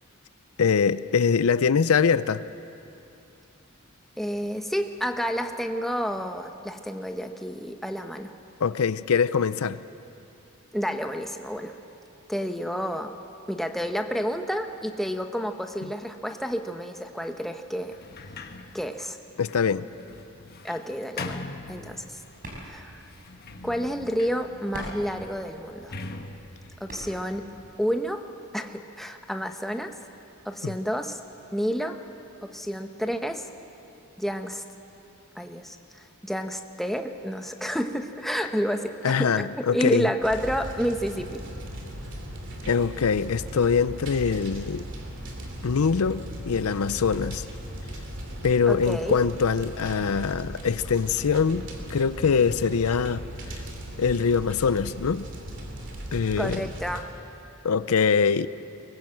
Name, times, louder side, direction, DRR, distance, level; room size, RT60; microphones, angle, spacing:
voice 1, 0.6-2.4 8.6-9.8 19.4-19.9 30.6-30.7 39.0-40.1 42.7-44.8 45.6-47.4 48.4-53.2 54.0-55.3 56.1-56.6 57.6-58.5, left 6 dB, 80° left, 15 dB, 0.5 m, -23 dB
voice 2, 4.2-8.3 10.7-11.7 12.3-13.1 13.5-18.0 18.7-19.2 20.6-21.4 21.7-22.0 22.6-23.0 23.6-25.9 26.8-28.2 28.5-29.9 30.4-31.2 31.5-32.0 32.4-33.5 34.2-34.6 35.4-41.5 48.7-49.2 56.4-57.1, equal, ahead, 5 dB, 0.9 m, -30 dB
Sliding door, 17.9-22.4 23.0-27.9, left 3 dB, 45° left, 1.1 m, -42 dB
sound 1, 21.8-27.7, equal, 40° right, 5.1 m, -45 dB
sound 2, 40.2-57.0, equal, 55° right, 3.0 m, -38 dB
23.0 x 20.0 x 7.6 m, 2.8 s
head